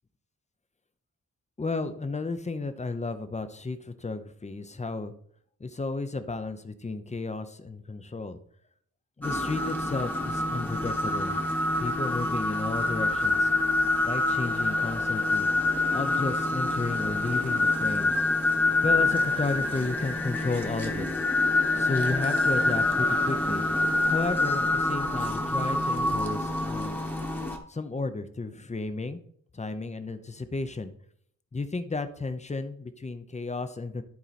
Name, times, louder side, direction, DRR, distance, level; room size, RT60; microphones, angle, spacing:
voice 1, 1.6-5.1 5.6-8.4 9.2-11.4 11.8-13.5 14.0-15.5 15.9-18.1 18.8-21.1 21.7-23.6 24.1-27.0 27.7-29.2 29.5-30.9 31.5-34.0, left 3 dB, 20° left, 10 dB, 0.7 m, -33 dB
sound 1, 9.2-27.6, left 2 dB, 5° left, 1.1 m, -26 dB
12.0 x 4.4 x 4.2 m, 0.63 s
wide cardioid pair, 145°, 32 cm